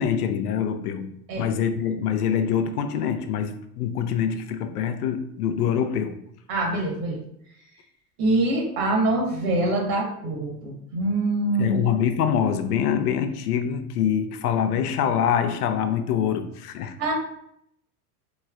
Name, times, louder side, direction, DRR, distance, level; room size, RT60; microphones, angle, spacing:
voice 1, 0.0-6.2 11.6-17.0, left 8 dB, 80° left, 0.5 m, -25 dB
voice 2, 6.5-7.2 8.2-11.8 17.0-17.1, right 2 dB, 50° right, 1.2 m, -24 dB
3.1 x 3.0 x 2.3 m
hypercardioid pair, 90°, 46 cm